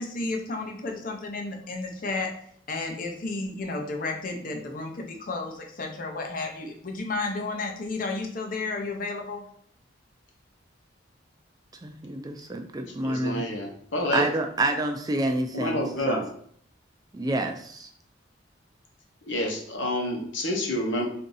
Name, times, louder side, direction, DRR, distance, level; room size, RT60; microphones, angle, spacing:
voice 1, 0.0-2.3 2.7-9.4, left 3 dB, 45° left, 2 dB, 0.7 m, -32 dB
voice 2, 11.8-13.4 14.1-15.8 16.1-16.2 17.1-17.9, right 2 dB, 20° right, 5 dB, 0.3 m, -28 dB
voice 3, 13.0-14.3 15.5-16.3 19.2-21.1, left 1 dB, 80° left, 1 dB, 1.0 m, -28 dB
3.6 x 2.7 x 3.9 m, 0.64 s
head